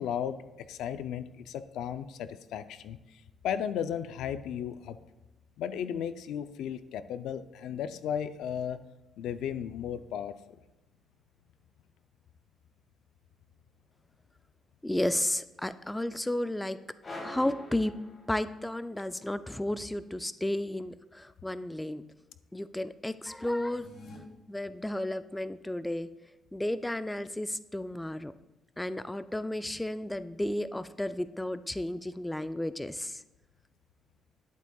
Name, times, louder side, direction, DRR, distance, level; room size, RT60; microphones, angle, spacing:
voice 1, 0.0-5.0 5.6-8.8 9.2-10.3, left 9 dB, 85° left, 12 dB, 0.4 m, -35 dB
voice 2, 14.8-16.8 17.2-17.9 18.3-22.0 22.5-23.9 24.5-26.1 26.5-28.3 28.8-33.2, left 1 dB, 10° left, 13 dB, 0.3 m, -33 dB
sound 1, 17.0-18.8, left 1 dB, 35° left, 3.0 m, -44 dB
sound 2, 23.6-24.2, left 2 dB, 60° left, 1.5 m, -50 dB
11.0 x 8.1 x 2.3 m, 0.99 s
cardioid pair, 90°, 0 cm